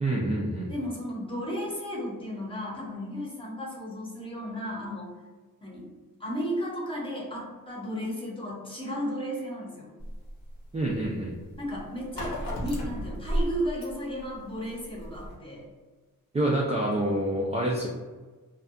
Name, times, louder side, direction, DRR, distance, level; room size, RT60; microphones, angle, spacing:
voice 1, 0.0-0.7 10.7-11.4 16.3-17.9, right 1 dB, 20° right, -3 dB, 0.3 m, -27 dB
voice 2, 0.7-5.1 5.6-5.9 6.2-9.9 11.6-15.7, equal, 15° left, -4 dB, 0.7 m, -34 dB
sound 1, 10.0-15.4, equal, 70° left, 0.8 m, -34 dB
2.7 x 2.2 x 2.4 m, 1.3 s
wide cardioid pair, 100°, 35 cm